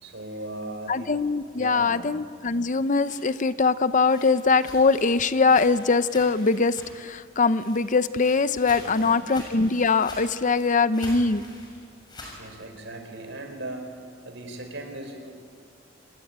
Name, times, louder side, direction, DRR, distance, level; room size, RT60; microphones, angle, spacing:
voice 1, 0.0-1.2 1.5-2.1 8.8-9.2 12.4-13.9 14.2-15.3, right 1 dB, 75° right, 5 dB, 4.8 m, -38 dB
voice 2, 0.9-11.4, left 4 dB, 40° left, 13 dB, 0.7 m, -22 dB
sound 1, 2.9-7.2 7.4-12.4, left 1 dB, 25° left, 6.9 m, -45 dB
27.0 x 21.5 x 8.8 m, 2.1 s
head